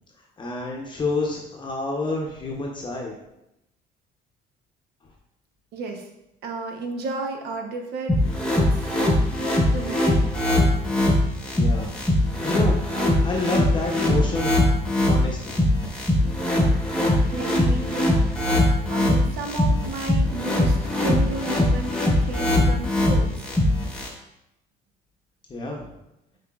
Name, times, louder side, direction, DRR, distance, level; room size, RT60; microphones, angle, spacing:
voice 1, 0.4-3.1 11.5-11.9 12.2-12.8 13.2-14.5 15.0-15.6 25.5-25.9, left 3 dB, 30° left, -2 dB, 0.7 m, -28 dB
voice 2, 5.7-6.1 6.4-8.1 8.5-8.9 9.7-10.3 17.3-18.1 18.9-23.5, right 3 dB, 70° right, 3 dB, 0.8 m, -33 dB
sound 1, 8.1-24.1, left 1 dB, 5° left, 1.0 m, -21 dB
5.7 x 3.3 x 2.3 m, 0.85 s
cardioid pair, 110°, 17 cm